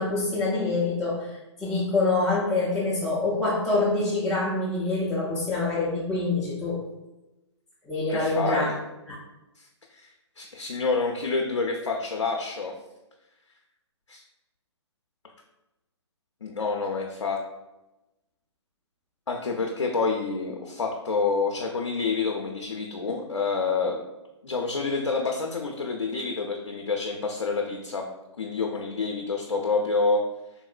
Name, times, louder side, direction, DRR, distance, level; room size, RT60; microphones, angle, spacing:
voice 1, 0.0-6.8 7.8-8.7 9.1-9.2, left 2 dB, 5° left, -10 dB, 0.3 m, -26 dB
voice 2, 8.1-8.7 9.6-12.7 14.1-14.2 16.4-17.4 19.3-24.0 24.4-28.1 28.4-30.2, left 4 dB, 85° left, 1 dB, 0.4 m, -28 dB
3.7 x 2.0 x 2.4 m, 0.99 s
figure-of-eight pair, 130°, 15 cm